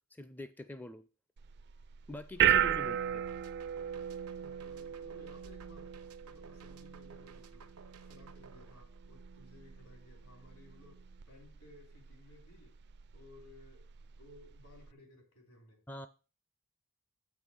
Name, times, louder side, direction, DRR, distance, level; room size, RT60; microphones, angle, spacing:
voice 1, 0.1-1.0 2.1-3.2 15.9-16.1, left 1 dB, 10° left, 0.4 m, -44 dB
sound 1, 1.4-14.9, right 10 dB, 50° right, 0.4 m, -36 dB
voice 2, 2.7-3.4 4.6-5.9 6.2-7.7 8.0-12.8 13.1-15.8, left 2 dB, 75° left, 3.3 m, -59 dB
sound 2, 3.3-9.5, right 6 dB, 90° right, 0.9 m, -58 dB
8.3 x 5.5 x 6.3 m
head